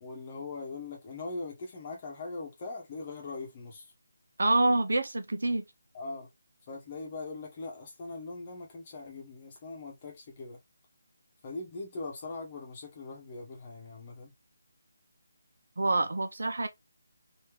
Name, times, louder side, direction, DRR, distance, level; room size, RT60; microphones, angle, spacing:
voice 1, 0.0-3.9 5.9-6.3 6.7-10.6 11.4-14.3, left 3 dB, 25° left, 1.0 m, -41 dB
voice 2, 4.4-5.6 15.8-16.7, right 2 dB, 80° right, 0.9 m, -26 dB
3.1 x 2.8 x 3.3 m
hypercardioid pair, 175°, 0 cm